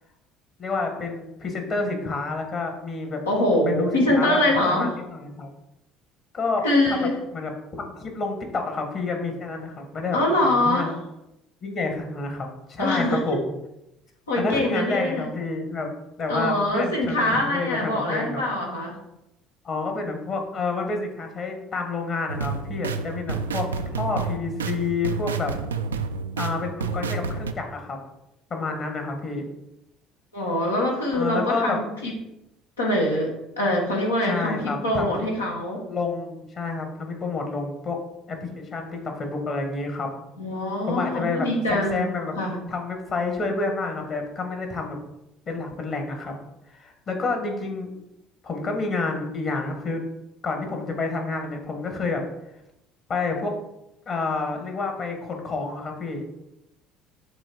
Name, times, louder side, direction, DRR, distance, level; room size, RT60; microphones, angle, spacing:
voice 1, 0.6-3.2 3.6-4.4 4.7-5.5 6.3-11.0 11.6-13.5 14.4-15.9 16.2-18.4 19.6-25.5 26.4-28.0 28.5-29.4 31.1-31.8 34.3-35.1 35.9-38.0 38.3-40.1 40.8-42.3 42.7-45.0 45.5-46.3 46.7-47.9 48.4-50.0 50.4-52.2 53.1-53.5 54.0-56.2, left 3 dB, 45° left, 3 dB, 1.6 m, -29 dB
voice 2, 3.2-4.9 6.6-7.2 10.1-10.9 12.8-13.4 14.3-15.2 16.3-19.0 30.3-32.1 32.8-35.8 40.4-42.1 42.4-42.6, left 1 dB, 90° left, -2 dB, 1.4 m, -24 dB
sound 1, 22.3-27.5, right 5 dB, 85° right, 0.3 m, -29 dB
6.7 x 3.5 x 4.6 m, 0.88 s
hypercardioid pair, 60°, 0 cm